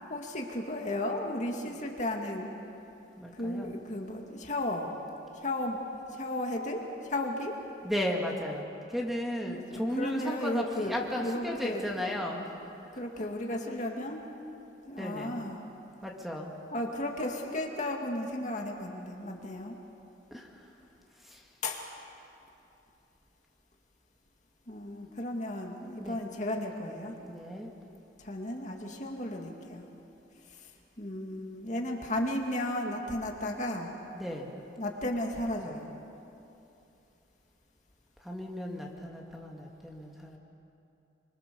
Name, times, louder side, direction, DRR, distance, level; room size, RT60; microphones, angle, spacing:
voice 1, 0.1-2.5 3.3-4.9 5.3-7.6 9.5-12.0 12.9-14.3 14.9-15.6 16.7-19.8 21.6-21.8 24.7-27.1 28.2-29.9 30.4-30.7 31.0-33.9 34.8-35.9, left 1 dB, 40° left, 1 dB, 2.3 m, -34 dB
voice 2, 3.2-3.7 7.8-8.6 8.9-12.5 15.0-15.4 16.0-16.5 20.3-20.5 21.2-21.4 26.0-26.2 27.2-27.7 34.2-34.5 38.2-40.4, equal, ahead, -1 dB, 2.2 m, -35 dB
26.5 x 25.0 x 7.0 m, 2.8 s
head